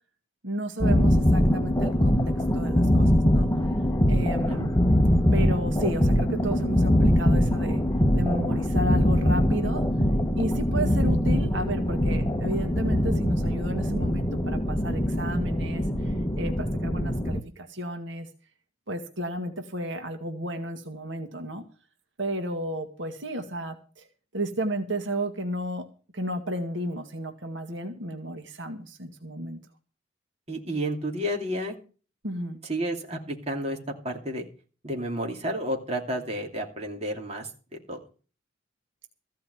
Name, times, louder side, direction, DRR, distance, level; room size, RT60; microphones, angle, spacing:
voice 1, 0.4-2.2 2.5-3.5 4.1-4.7 5.3-7.8 8.1-9.8 10.4-18.3 18.9-21.6 22.2-24.1 24.3-25.9 26.1-29.6 32.2-32.6, right 1 dB, 75° right, 5 dB, 1.9 m, -33 dB
sound 1, 0.8-17.4, equal, 20° left, 1.1 m, -23 dB
voice 2, 30.5-31.7 32.7-33.8 34.0-34.4 34.8-38.0, equal, 35° right, 1 dB, 2.8 m, -31 dB
15.0 x 5.7 x 9.5 m, 0.37 s
head